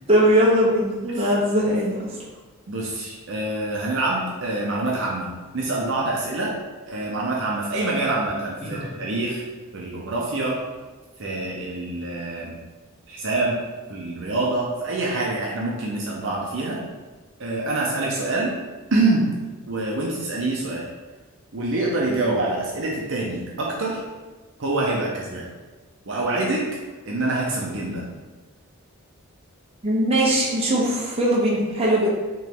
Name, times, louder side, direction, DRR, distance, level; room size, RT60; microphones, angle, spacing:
voice 1, 0.1-2.0 8.6-8.8 29.8-32.1, equal, 25° right, -5 dB, 0.9 m, -20 dB
voice 2, 2.7-6.6 6.9-9.4 9.7-10.6 11.2-12.6 13.1-13.6 13.9-16.8 17.4-18.5 18.9-19.3 19.7-20.8 21.5-24.0 24.6-25.5 26.1-26.6 27.1-28.0, right 2 dB, 55° right, -4 dB, 0.7 m, -26 dB
3.6 x 3.0 x 4.6 m, 1.3 s
head